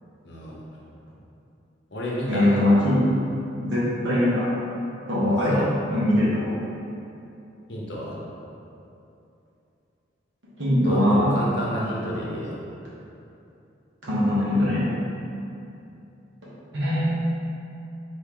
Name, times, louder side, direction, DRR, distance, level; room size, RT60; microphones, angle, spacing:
voice 1, 0.2-0.6 1.9-2.6 5.2-5.7 7.7-8.2 10.8-11.0 11.3-12.5, equal, 60° left, -5 dB, 0.9 m, -31 dB
voice 2, 2.3-3.0 3.6-4.5 5.1-5.6 5.9-6.5 10.6-11.3 14.0-14.9 16.7-17.4, left 1 dB, 70° right, -9 dB, 1.3 m, -21 dB
4.4 x 3.0 x 3.7 m, 2.7 s
head